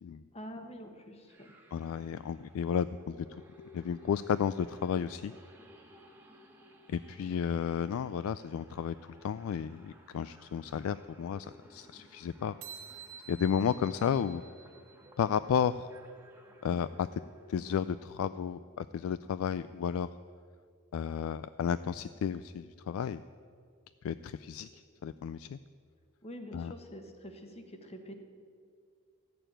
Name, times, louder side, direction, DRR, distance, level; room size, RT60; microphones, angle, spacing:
voice 1, 0.3-1.5 26.2-28.1, equal, 30° left, 5 dB, 1.3 m, -46 dB
sound 1, 1.3-18.3, equal, 10° right, 1.3 m, -58 dB
voice 2, 1.7-3.3 3.7-5.3 6.9-9.0 9.2-12.5 13.3-14.4 15.2-15.9 16.6-17.2 17.5-20.1 20.9-23.2 24.0-25.6 26.5-26.7, left 7 dB, 75° left, 14 dB, 0.3 m, -32 dB
sound 2, 12.6-15.2, right 7 dB, 75° right, 2.0 m, -49 dB
14.0 x 6.8 x 8.9 m, 2.2 s
head